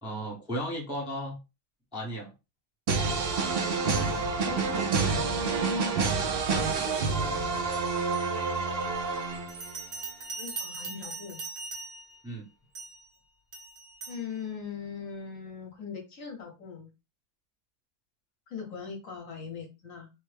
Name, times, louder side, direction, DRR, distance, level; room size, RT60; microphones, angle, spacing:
voice 1, 0.0-1.4 1.9-2.3 12.2-12.5, equal, 5° right, -3 dB, 0.6 m, -35 dB
sound 1, 2.9-9.8, right 4 dB, 75° right, 0.5 m, -28 dB
voice 2, 4.4-5.7 10.4-11.4 14.1-16.9 18.5-20.1, left 6 dB, 60° left, 2 dB, 1.2 m, -40 dB
Bell, 9.5-12.2 12.7-13.1 13.5-14.2, right 3 dB, 45° right, 0.9 m, -40 dB
3.3 x 2.1 x 3.2 m, 0.26 s
omnidirectional pair, 1.7 m